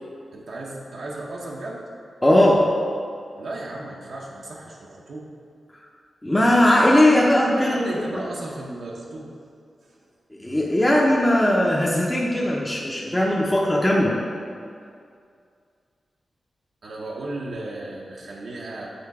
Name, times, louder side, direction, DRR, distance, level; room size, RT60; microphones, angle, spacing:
voice 1, 0.3-1.8 3.4-5.3 7.6-9.4 9.8-10.0 16.8-18.9, right 2 dB, 75° right, -3 dB, 0.8 m, -35 dB
voice 2, 2.2-2.7 6.2-7.9 10.4-14.2, left 1 dB, 10° left, -4 dB, 0.6 m, -18 dB
7.8 x 3.9 x 4.7 m, 2.3 s
wide cardioid pair, 130°, 0 cm